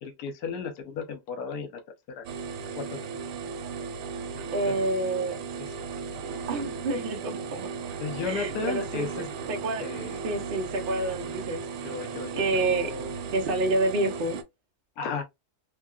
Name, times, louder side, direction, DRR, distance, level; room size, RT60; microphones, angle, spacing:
voice 1, 0.0-1.8 2.2-2.3 2.8-2.9 4.3-4.9 8.0-9.3 9.8-10.2 11.8-13.2 15.0-15.2, left 5 dB, 70° left, 1.2 m, -34 dB
sound 1, 2.2-14.4, right 5 dB, 85° right, 1.2 m, -36 dB
voice 2, 4.5-5.4 6.5-7.7 8.2-9.9 10.2-11.6 12.4-12.9 13.3-14.4, right 2 dB, 60° right, 0.5 m, -28 dB
3.6 x 2.2 x 2.3 m
omnidirectional pair, 1.7 m